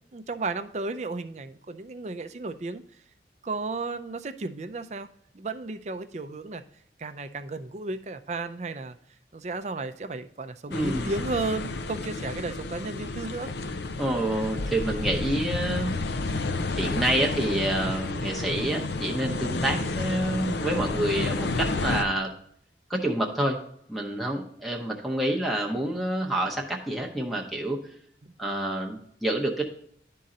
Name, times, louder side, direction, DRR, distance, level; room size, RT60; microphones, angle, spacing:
voice 1, 0.1-2.8 3.4-5.1 5.3-6.6 7.0-9.0 9.3-13.5 28.2-28.3, right 3 dB, 40° right, 10 dB, 0.5 m, -34 dB
sound 1, 10.7-22.0, left 3 dB, 75° left, 0.6 m, -31 dB
voice 2, 10.7-11.1 14.0-16.0 16.7-22.3 22.9-23.6 23.9-27.8 28.4-29.6, right 1 dB, ahead, 1 dB, 0.7 m, -28 dB
11.5 x 3.8 x 4.1 m, 0.69 s
head